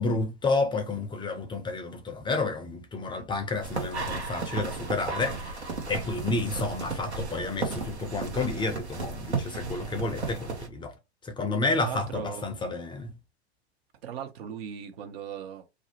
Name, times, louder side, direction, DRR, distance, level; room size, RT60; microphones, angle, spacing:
voice 1, 0.0-10.9 11.2-13.1, left 3 dB, 15° left, 0.5 m, -30 dB
sound 1, 3.6-10.7, right 4 dB, 85° right, 0.9 m, -34 dB
voice 2, 11.7-12.5 14.0-15.7, right 8 dB, 65° right, 0.8 m, -38 dB
2.5 x 2.0 x 2.8 m
figure-of-eight pair, 90°, 32 cm